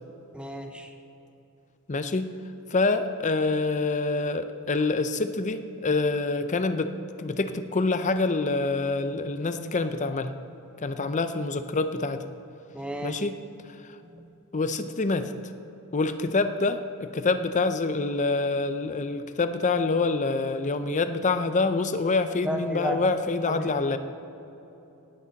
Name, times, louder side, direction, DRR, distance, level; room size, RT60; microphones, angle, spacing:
voice 1, 0.3-0.9 12.7-13.2 22.4-23.1 23.5-23.9, right 1 dB, 5° right, 5 dB, 0.8 m, -32 dB
voice 2, 1.9-2.3 2.7-6.9 7.2-10.3 10.8-12.3 13.0-13.4 14.5-15.3 15.9-24.0, left 3 dB, 35° left, 10 dB, 0.6 m, -26 dB
18.5 x 8.9 x 4.1 m, 3.0 s
head